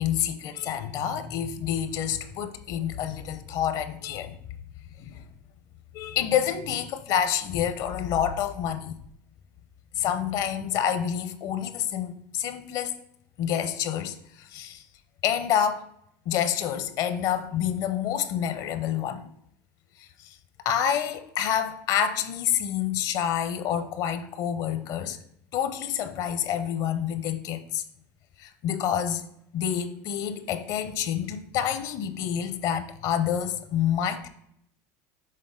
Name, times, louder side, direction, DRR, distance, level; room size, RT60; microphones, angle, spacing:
voice 1, 0.0-4.4 5.0-5.2 5.9-8.9 9.9-12.9 13.4-14.8 15.2-15.9 16.3-19.3 20.0-20.4 20.6-25.2 25.5-27.8 28.4-29.3 29.5-34.3, left 9 dB, 55° left, 0.7 m, -28 dB
6.6 x 3.8 x 3.8 m
supercardioid pair, 120°, 8 cm